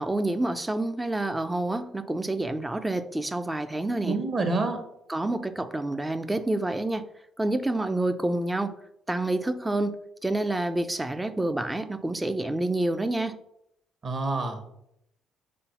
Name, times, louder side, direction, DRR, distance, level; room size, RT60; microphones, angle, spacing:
voice 1, 0.0-4.1 5.1-7.1 7.4-8.8 9.1-13.4, right 2 dB, 15° right, 10 dB, 0.5 m, -28 dB
voice 2, 4.0-4.8 14.0-14.6, right 3 dB, 40° right, 6 dB, 1.4 m, -27 dB
4.3 x 4.0 x 5.5 m, 0.79 s
cardioid pair, 90°, 0 cm